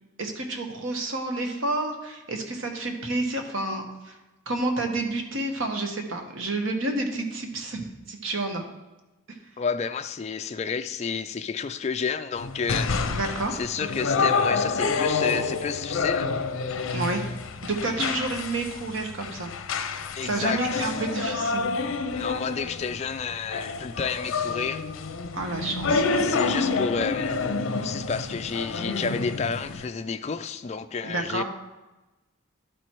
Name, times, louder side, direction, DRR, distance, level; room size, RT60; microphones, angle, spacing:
voice 1, 0.2-4.2 4.5-7.8 8.1-8.6 9.3-9.4 13.1-13.6 16.9-17.2 17.6-19.5 20.2-21.7 25.3-26.2 31.0-31.4, right 2 dB, 70° right, 1.2 m, -29 dB
voice 2, 9.6-13.2 13.5-16.3 18.0-18.1 20.2-21.0 22.1-24.8 25.7-25.8 26.2-27.4 27.8-31.4, left 5 dB, 30° left, 0.3 m, -30 dB
sound 1, 12.4-29.9, left 4 dB, 75° left, 0.6 m, -28 dB
11.0 x 4.5 x 4.5 m
head